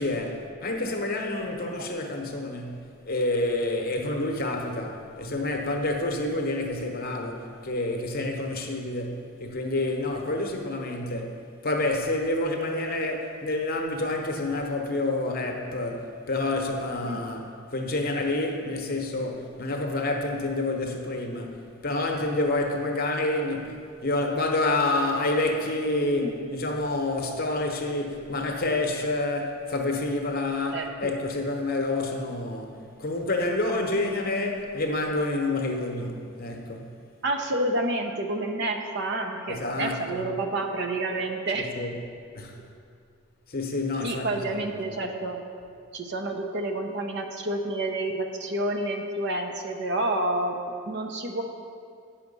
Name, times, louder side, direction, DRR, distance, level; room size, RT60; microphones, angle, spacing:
voice 1, 0.0-32.7 33.0-37.0 39.5-40.3 41.6-42.0 42.3-42.6 43.5-44.7, left 2 dB, 45° left, 2 dB, 0.9 m, -28 dB
voice 2, 30.7-31.1 37.2-41.7 44.0-45.4 45.9-50.6 50.9-51.4, right 1 dB, 50° right, 4 dB, 0.7 m, -29 dB
9.1 x 5.8 x 5.4 m, 2.3 s
head